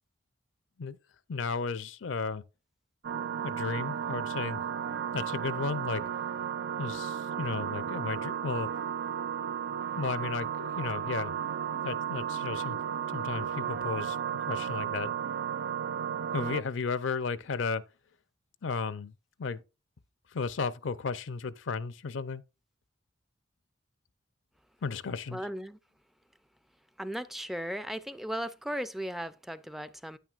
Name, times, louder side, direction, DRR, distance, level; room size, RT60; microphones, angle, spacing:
voice 1, 1.3-2.4 3.4-4.6 5.1-6.0 6.8-8.7 10.0-11.3 11.8-12.8 13.1-15.1 16.3-17.8 18.6-19.1 19.4-19.6 20.3-22.4 24.8-25.4, left 5 dB, 75° left, 0.5 m, -34 dB
sound 1, 3.0-16.6, right 8 dB, 60° right, 0.5 m, -34 dB
voice 2, 25.3-25.8 27.0-30.2, equal, ahead, 0.3 m, -36 dB
9.4 x 9.1 x 2.4 m
head